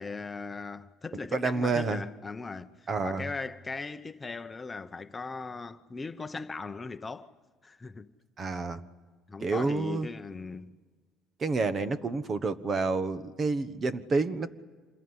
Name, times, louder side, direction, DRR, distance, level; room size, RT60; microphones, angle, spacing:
voice 1, 0.0-7.3 7.6-8.1 9.3-10.8, left 4 dB, 20° left, 0.9 m, -39 dB
voice 2, 1.3-2.0 2.9-3.3 8.4-8.8 9.4-10.1 11.4-14.5, right 3 dB, 35° right, 1.3 m, -29 dB
27.0 x 21.5 x 9.9 m
cardioid pair, 120°, 0 cm